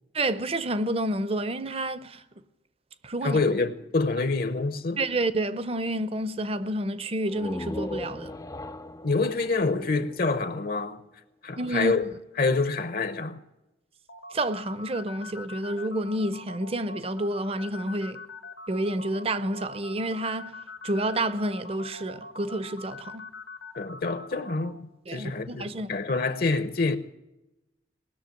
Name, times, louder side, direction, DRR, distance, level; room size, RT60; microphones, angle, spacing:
voice 1, 0.1-2.2 3.0-3.4 5.0-8.3 11.6-11.9 14.3-18.2 18.7-20.6 20.8-23.3 25.1-26.0, right 1 dB, 35° right, 0.7 m, -29 dB
voice 2, 3.2-5.0 9.0-11.0 11.4-12.1 12.4-13.4 23.8-27.0, left 3 dB, 55° left, 0.9 m, -27 dB
sound 1, 7.2-10.9, left 1 dB, 20° left, 0.5 m, -39 dB
sound 2, 14.1-24.7, left 2 dB, 80° left, 1.4 m, -43 dB
19.0 x 6.6 x 9.2 m
head